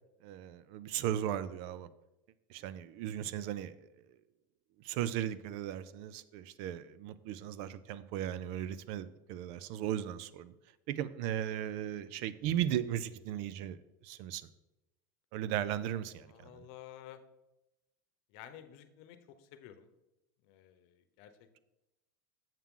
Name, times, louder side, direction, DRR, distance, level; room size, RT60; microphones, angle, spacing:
voice 1, 0.2-1.9 2.5-3.7 4.8-10.5 10.9-13.8 14.0-14.5 15.3-16.3 16.5-16.6, right 11 dB, 65° right, 0.5 m, -36 dB
voice 2, 16.2-17.2 18.3-19.9 20.4-21.6, left 11 dB, 65° left, 0.9 m, -53 dB
7.4 x 7.1 x 3.7 m
supercardioid pair, 125°, 11 cm